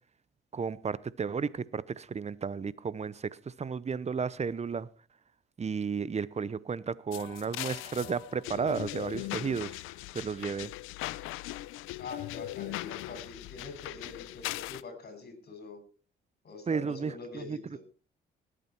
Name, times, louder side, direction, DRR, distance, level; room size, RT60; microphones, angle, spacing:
voice 1, 0.5-4.9 5.6-9.8 10.1-10.7 16.7-17.6, right 5 dB, 35° right, 0.8 m, -33 dB
sound 1, 7.1-14.8, left 17 dB, 90° left, 0.5 m, -39 dB
voice 2, 12.0-15.8 16.4-17.8, left 3 dB, 50° left, 6.5 m, -44 dB
19.5 x 8.9 x 4.5 m
supercardioid pair, 75°, 20 cm